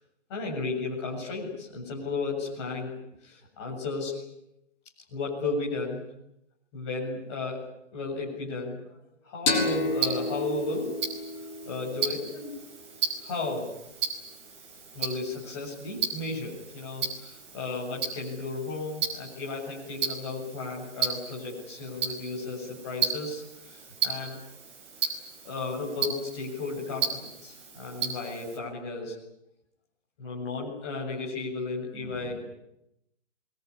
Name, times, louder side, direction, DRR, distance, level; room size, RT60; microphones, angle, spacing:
voice 1, 0.3-2.9 3.3-4.1 5.1-6.0 6.7-7.6 7.9-8.8 9.3-10.9 11.6-12.6 13.2-13.7 14.9-17.0 17.5-23.4 24.0-24.4 25.4-29.1 30.2-32.4, left 3 dB, 20° left, -3 dB, 7.7 m, -34 dB
sound 1, 9.5-12.8, left 2 dB, 40° left, 7.9 m, -31 dB
Tick-tock, 9.5-28.6, right 7 dB, 25° right, 5.0 m, -35 dB
26.5 x 22.0 x 9.9 m, 0.83 s
hypercardioid pair, 180°, 37 cm